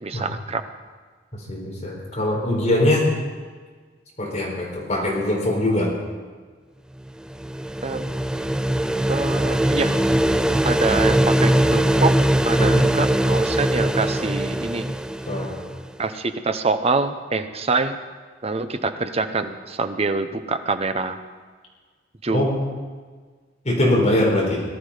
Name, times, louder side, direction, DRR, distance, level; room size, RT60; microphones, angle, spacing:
voice 1, 0.0-0.6 7.8-8.1 9.1-9.9 10.6-14.9 16.0-18.0 18.4-21.2 22.2-22.5, right 3 dB, 35° right, 9 dB, 0.8 m, -25 dB
voice 2, 1.3-3.1 4.2-5.9 12.6-12.9 15.3-15.5 22.3-22.6 23.6-24.6, left 1 dB, 40° left, -3 dB, 4.3 m, -22 dB
sound 1, 7.1-15.9, right 1 dB, 5° right, 0.3 m, -21 dB
18.5 x 12.0 x 5.0 m, 1.5 s
head